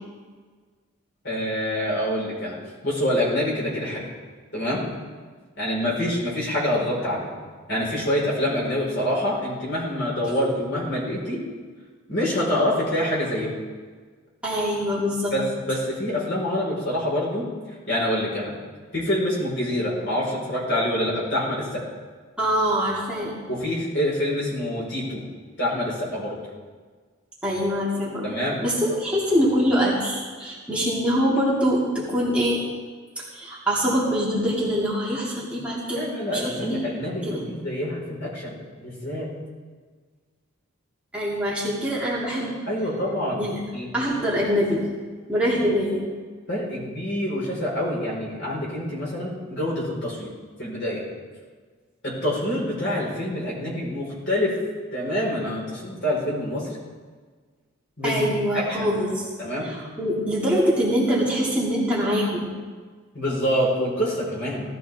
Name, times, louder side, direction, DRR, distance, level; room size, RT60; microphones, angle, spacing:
voice 1, 1.2-2.6 2.8-4.0 4.5-4.9 5.6-7.3 7.7-11.4 12.1-13.5 15.3-17.4 17.9-18.6 18.9-21.8 23.5-25.3 25.6-26.4 28.2-28.6 35.9-39.3 42.7-43.4 43.7-43.9 45.6-45.8 46.5-50.3 50.6-51.0 52.0-54.5 54.9-56.7 58.0-58.3 58.5-58.9 59.4-59.7 63.1-64.6, left 1 dB, 55° left, -5 dB, 4.9 m, -26 dB
voice 2, 14.4-15.3 22.4-23.3 27.4-28.3 28.6-32.6 33.2-36.1 36.3-36.9 37.2-37.4 41.1-42.5 43.4-43.6 43.9-44.8 45.3-46.1 58.0-59.3 59.6-62.5, equal, 5° right, -8 dB, 2.5 m, -24 dB
17.0 x 13.5 x 3.6 m, 1.5 s
head